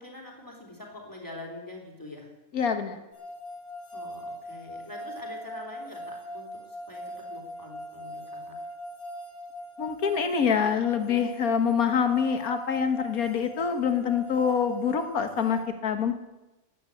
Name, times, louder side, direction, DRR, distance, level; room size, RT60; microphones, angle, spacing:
voice 1, 0.0-2.3 3.9-8.5, left 1 dB, 15° left, 1 dB, 3.1 m, -44 dB
voice 2, 2.5-3.0 9.8-16.1, left 7 dB, 90° left, 7 dB, 1.8 m, -25 dB
sound 1, 3.1-15.6, equal, 10° right, 3.7 m, -41 dB
13.0 x 9.8 x 8.1 m, 1.0 s
omnidirectional pair, 1.5 m